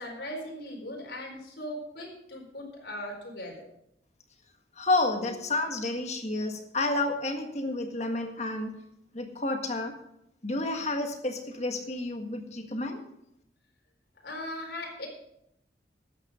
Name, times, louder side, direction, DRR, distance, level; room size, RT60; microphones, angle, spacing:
voice 1, 0.0-3.6 5.2-5.3 14.2-15.1, left 1 dB, 75° left, 0 dB, 4.2 m, -39 dB
voice 2, 4.8-8.7 9.1-9.9 10.4-13.0, left 2 dB, 40° left, 5 dB, 1.6 m, -30 dB
13.0 x 9.1 x 5.0 m, 0.77 s
head